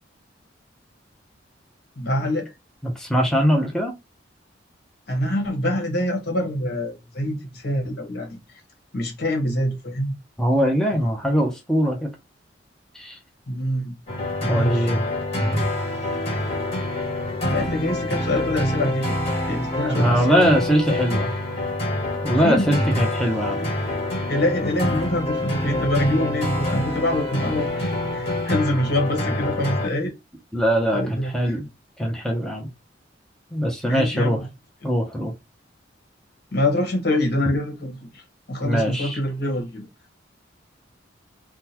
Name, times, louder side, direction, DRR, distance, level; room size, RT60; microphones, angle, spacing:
voice 1, 2.0-2.5 5.1-8.4 8.9-10.1 13.5-13.9 14.4-14.9 17.5-19.1 19.5-20.6 22.4-22.7 24.3-30.1 30.9-31.6 33.8-34.4 36.5-38.2 38.5-39.8, left 1 dB, 55° left, 1.3 m, -25 dB
voice 2, 2.8-3.9 10.4-12.1 12.9-13.2 14.5-15.0 19.8-21.3 22.2-23.7 30.5-31.7 32.0-32.7 33.5-34.4 34.8-35.3 38.6-39.2, equal, 5° left, 0.6 m, -22 dB
sound 1, 14.1-29.9, left 1 dB, 35° left, 1.8 m, -26 dB
3.7 x 2.2 x 2.8 m
head